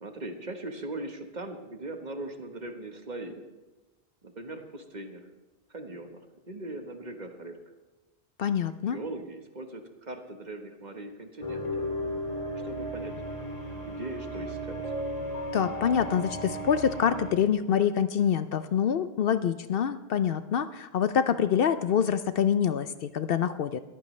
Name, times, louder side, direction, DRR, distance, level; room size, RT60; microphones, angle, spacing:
voice 1, 0.0-3.4 4.2-5.2 5.7-6.2 6.5-7.6 8.9-11.9 12.6-13.1 13.8-14.8, right 2 dB, 40° right, 5 dB, 1.4 m, -40 dB
voice 2, 8.4-9.0 15.5-23.8, left 8 dB, 65° left, 12 dB, 0.7 m, -26 dB
sound 1, 11.4-17.5, equal, 35° left, 2.6 m, -35 dB
21.5 x 14.5 x 3.2 m, 1.1 s
omnidirectional pair, 1.1 m